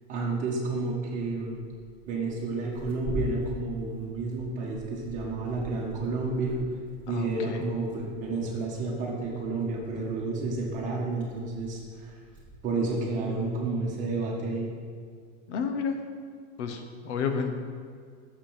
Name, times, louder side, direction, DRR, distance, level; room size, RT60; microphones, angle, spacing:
voice 1, 0.1-1.5 2.0-6.6 7.1-12.2 12.6-14.7, right 3 dB, 20° right, -4 dB, 1.5 m, -30 dB
Tearing, 1.0-13.7, left 1 dB, 5° left, 1.3 m, -44 dB
voice 2, 7.1-7.6 15.5-16.0 16.6-17.6, left 6 dB, 70° left, 5 dB, 1.1 m, -31 dB
6.9 x 5.5 x 7.3 m, 2.1 s
supercardioid pair, 175°, 37 cm